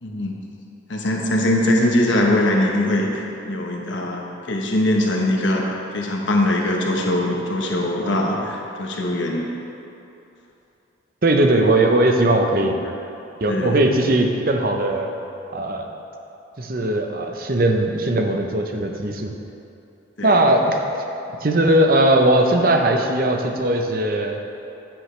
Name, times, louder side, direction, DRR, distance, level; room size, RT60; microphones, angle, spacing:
voice 1, 0.0-0.4 0.9-4.2 4.5-9.5 12.6-12.8 13.5-13.8 20.2-20.4, left 1 dB, 85° left, -1 dB, 1.1 m, -21 dB
voice 2, 11.2-12.7 13.4-15.1 15.5-15.9 16.6-19.3 20.2-20.8 21.4-24.4, right 1 dB, 50° right, 3 dB, 0.7 m, -19 dB
9.9 x 9.1 x 3.3 m, 2.7 s
head